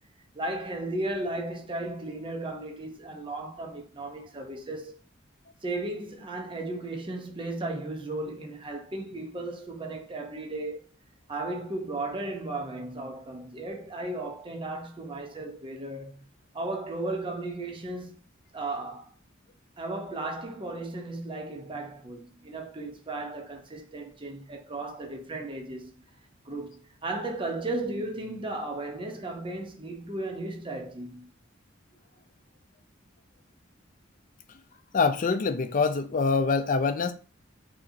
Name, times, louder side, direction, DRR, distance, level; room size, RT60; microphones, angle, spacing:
voice 1, 0.3-5.0 5.6-10.9 11.3-16.2 16.5-18.2 18.5-19.1 19.8-25.9 26.4-31.3, right 2 dB, 25° right, 0.7 m, -35 dB
voice 2, 34.9-37.1, left 4 dB, 45° left, 0.5 m, -25 dB
5.3 x 2.8 x 2.7 m
head